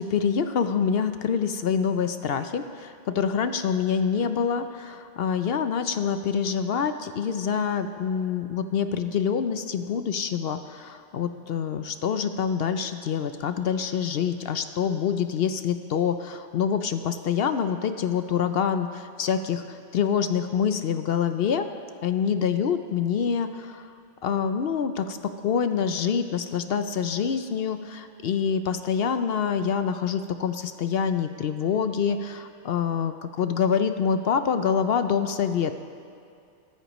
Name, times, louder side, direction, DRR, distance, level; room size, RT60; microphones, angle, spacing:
voice 1, 0.0-21.7 22.0-23.9 24.2-25.2 25.4-35.7, left 7 dB, 65° left, 9 dB, 0.7 m, -26 dB
18.0 x 13.5 x 3.1 m, 2.4 s
omnidirectional pair, 1.2 m